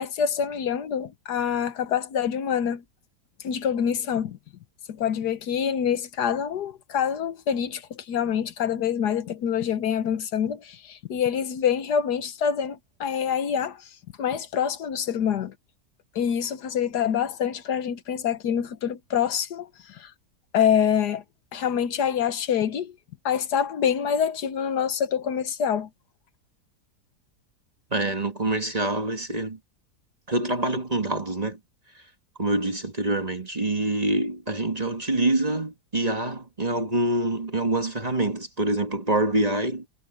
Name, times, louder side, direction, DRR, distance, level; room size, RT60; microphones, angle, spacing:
voice 1, 0.0-2.8 3.4-4.4 4.9-13.8 14.2-15.5 16.1-20.1 20.5-21.2 21.5-22.9 23.2-25.9, left 8 dB, 75° left, 1.6 m, -26 dB
voice 2, 27.9-29.6 30.3-31.6 32.4-39.8, right 2 dB, 25° right, 1.7 m, -26 dB
omnidirectional pair, 1.7 m